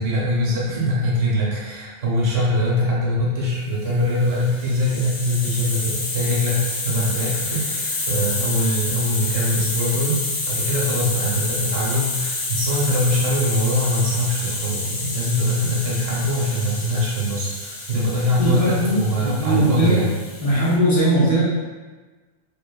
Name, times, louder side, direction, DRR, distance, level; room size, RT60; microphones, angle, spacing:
voice 1, 0.0-20.1, equal, 80° right, -6 dB, 1.1 m, -22 dB
Hiss, 4.1-20.8, left 2 dB, 70° left, 0.8 m, -29 dB
voice 2, 18.4-20.0 20.4-21.4, right 1 dB, 30° right, -9 dB, 0.3 m, -19 dB
2.6 x 2.2 x 2.2 m, 1.3 s
omnidirectional pair, 1.3 m